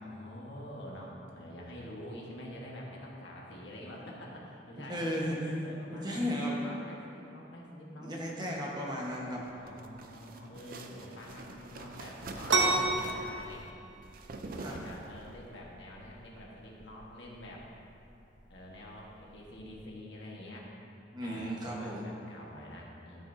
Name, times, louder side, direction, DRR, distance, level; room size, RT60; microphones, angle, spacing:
voice 1, 0.0-5.1 5.6-8.1 9.5-13.6 14.4-17.7 18.5-20.7 21.2-23.2, equal, 65° left, -3 dB, 1.4 m, -47 dB
voice 2, 4.9-5.6 5.9-6.7 8.0-9.4 14.6-14.8 21.1-22.1, equal, 25° right, -3 dB, 1.2 m, -34 dB
sound 1, 9.4-15.4, right 3 dB, 50° right, 0.5 m, -45 dB
sound 2, 12.5-19.9, right 3 dB, 75° right, 0.9 m, -34 dB
13.0 x 7.1 x 2.7 m, 2.7 s
head